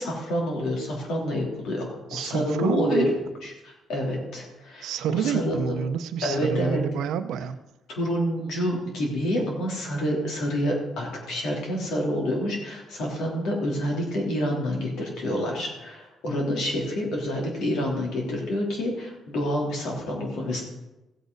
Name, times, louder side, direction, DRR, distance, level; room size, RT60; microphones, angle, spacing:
voice 1, 0.0-5.6 6.2-6.8 7.9-20.6, equal, 80° left, -1 dB, 3.2 m, -28 dB
voice 2, 2.1-3.2 4.8-7.6, right 8 dB, 85° right, 10 dB, 0.7 m, -28 dB
15.0 x 8.3 x 4.0 m, 1.0 s
cardioid pair, 90°, 0 cm